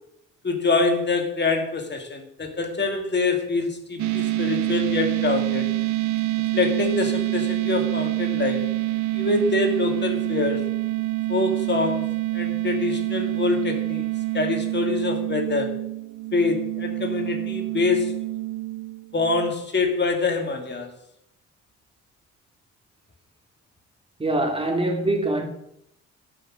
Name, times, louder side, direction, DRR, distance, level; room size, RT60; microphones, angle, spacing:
voice 1, 0.4-5.7 6.5-8.7 9.1-10.6 11.3-14.0 14.3-15.7 16.3-18.1 19.1-20.9, left 3 dB, 35° left, 2.6 m, -25 dB
sound 1, 4.0-19.5, right 17 dB, 70° right, 0.7 m, -26 dB
voice 2, 24.2-25.5, right 2 dB, 20° right, 3.2 m, -23 dB
12.0 x 6.4 x 7.6 m
cardioid pair, 90°, 30 cm